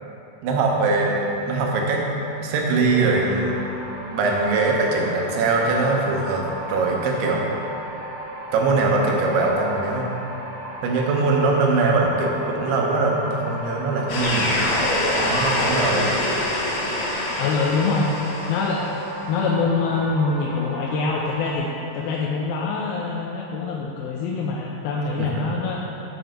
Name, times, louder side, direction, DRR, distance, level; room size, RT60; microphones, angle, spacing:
voice 1, 0.4-2.0 2.4-3.6 4.1-7.4 8.5-10.1 10.8-14.7 15.2-16.1 25.2-25.3, right 3 dB, 85° right, -1 dB, 2.9 m, -22 dB
sound 1, 2.9-21.6, right 1 dB, 65° right, 1.3 m, -36 dB
sound 2, 14.1-19.0, left 1 dB, 60° left, 2.2 m, -24 dB
voice 2, 17.4-18.1 18.5-18.9 19.3-25.8, left 4 dB, 80° left, -3 dB, 2.3 m, -24 dB
6.9 x 5.9 x 5.1 m, 3.0 s
omnidirectional pair, 4.6 m